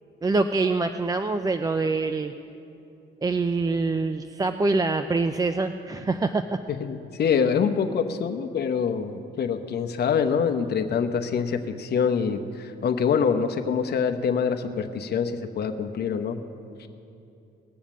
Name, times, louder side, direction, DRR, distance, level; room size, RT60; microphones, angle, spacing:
voice 1, 0.2-2.3 3.2-6.6, right 3 dB, 20° right, 8 dB, 0.4 m, -25 dB
voice 2, 6.8-16.4, left 6 dB, 55° left, 6 dB, 0.9 m, -25 dB
19.0 x 7.2 x 7.2 m, 2.7 s
cardioid pair, 90°, 20 cm